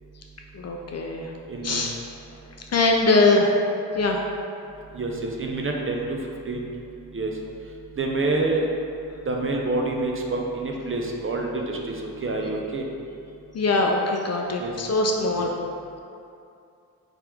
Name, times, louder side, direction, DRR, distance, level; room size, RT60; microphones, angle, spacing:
voice 1, 0.5-1.3 1.6-2.0 2.7-3.5 3.9-4.2 13.5-15.6, left 2 dB, 40° left, 1 dB, 0.5 m, -22 dB
voice 2, 1.5-1.8 4.9-6.2 6.5-6.7 7.1-7.3 8.0-8.7 9.3-12.8 14.6-14.7 15.3-15.5, right 2 dB, 30° right, 0 dB, 0.5 m, -27 dB
3.4 x 2.8 x 3.4 m, 2.6 s
supercardioid pair, 45°, 42 cm